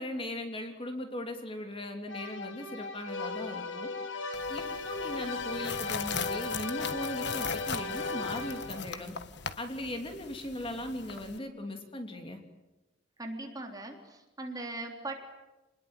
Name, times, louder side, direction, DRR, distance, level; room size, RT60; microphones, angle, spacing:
voice 1, 0.0-3.9 4.5-9.1 9.6-12.4, left 1 dB, 30° left, 5 dB, 3.0 m, -38 dB
sound 1, 2.1-8.9, left 3 dB, 80° left, 2.5 m, -36 dB
sound 2, 4.3-11.4, left 6 dB, 60° left, 1.5 m, -40 dB
voice 2, 13.2-15.1, right 2 dB, 20° right, 3 dB, 3.6 m, -39 dB
28.5 x 20.5 x 9.1 m, 1.1 s
head